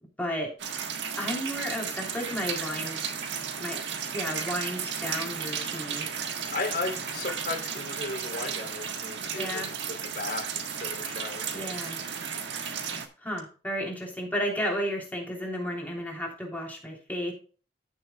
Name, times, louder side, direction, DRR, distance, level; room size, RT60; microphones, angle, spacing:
voice 1, 0.2-0.5 1.2-3.0 3.6-3.8 4.1-6.1 9.4-9.7 11.5-12.0 13.2-17.3, equal, 10° left, -1 dB, 3.3 m, -33 dB
sound 1, 0.6-13.1, right 6 dB, 80° right, 1.4 m, -34 dB
voice 2, 6.5-9.6 9.9-11.8, left 3 dB, 55° left, 2 dB, 3.0 m, -35 dB
14.5 x 7.1 x 2.3 m, 0.37 s
head